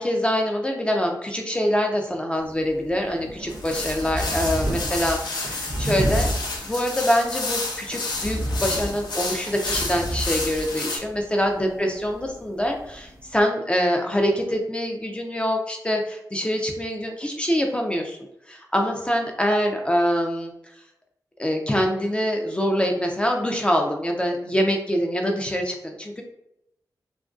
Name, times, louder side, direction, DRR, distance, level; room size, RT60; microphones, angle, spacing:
voice 1, 0.0-6.3 6.6-18.2 18.5-20.5 21.4-26.2, equal, 15° left, 2 dB, 0.3 m, -24 dB
sound 1, 2.3-13.4, right 1 dB, 40° right, 0.5 m, -32 dB
sound 2, 3.5-11.0, left 3 dB, 85° left, 0.5 m, -30 dB
2.4 x 2.2 x 2.3 m, 0.81 s
wide cardioid pair, 80°, 7 cm